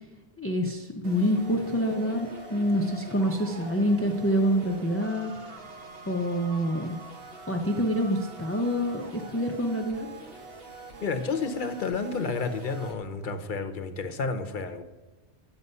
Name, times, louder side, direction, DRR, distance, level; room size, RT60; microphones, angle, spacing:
voice 1, 0.4-5.3 6.1-7.0 7.5-10.1, equal, 15° left, 2 dB, 0.5 m, -26 dB
sound 1, 1.0-12.9, right 2 dB, 55° right, 1.4 m, -44 dB
voice 2, 11.0-14.8, left 4 dB, 50° left, 8 dB, 0.8 m, -30 dB
9.5 x 6.9 x 5.4 m, 1.1 s
omnidirectional pair, 1.2 m